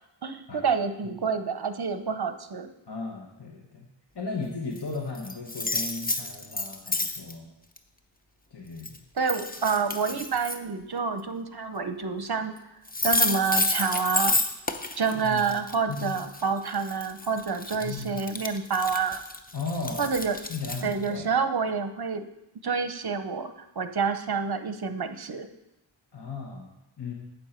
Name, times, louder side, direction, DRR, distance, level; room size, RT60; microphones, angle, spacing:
voice 1, 0.2-2.7 9.2-12.5 13.0-14.4 15.0-19.2 20.0-20.4 20.8-22.3 22.6-25.5, right 5 dB, 50° right, 9 dB, 0.8 m, -28 dB
voice 2, 2.9-3.9 4.1-7.5 8.5-9.0 15.1-15.4 15.9-16.2 17.7-18.2 19.5-20.1 20.5-21.3 26.1-26.7 27.0-27.1, left 4 dB, 55° left, 0 dB, 1.2 m, -36 dB
sound 1, 4.8-4.9 5.1-7.3 7.8-7.9 8.8-9.0 9.3-10.6 12.6-12.7 12.9-21.1, left 2 dB, 20° left, 0.6 m, -30 dB
8.8 x 7.4 x 4.4 m, 0.91 s
wide cardioid pair, 55°, 48 cm